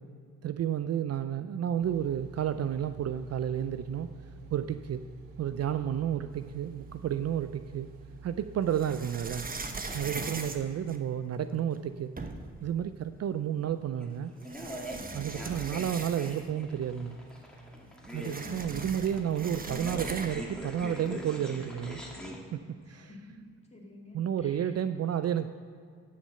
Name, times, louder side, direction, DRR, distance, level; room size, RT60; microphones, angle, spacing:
voice 1, 0.4-4.1 4.5-5.0 5.4-7.9 8.2-9.5 9.9-12.1 12.6-14.3 15.1-17.2 18.1-22.0 22.5-23.1 24.1-25.5, right 9 dB, 50° right, 11 dB, 0.4 m, -31 dB
sound 1, 1.8-10.7, right 5 dB, 85° right, 0.8 m, -50 dB
sound 2, 7.1-7.9 8.7-11.4 11.9-12.0 12.2-12.6 13.7-13.8 14.4-16.6 16.9-17.0 17.3-20.5, right 3 dB, 25° right, 1.0 m, -40 dB
sound 3, 14.0-22.4, equal, ahead, 2.2 m, -43 dB
voice 2, 14.8-15.3 18.4-18.9 22.9-24.8, left 1 dB, 20° left, -1 dB, 2.5 m, -50 dB
11.0 x 6.4 x 5.6 m, 2.2 s
supercardioid pair, 50°, 33 cm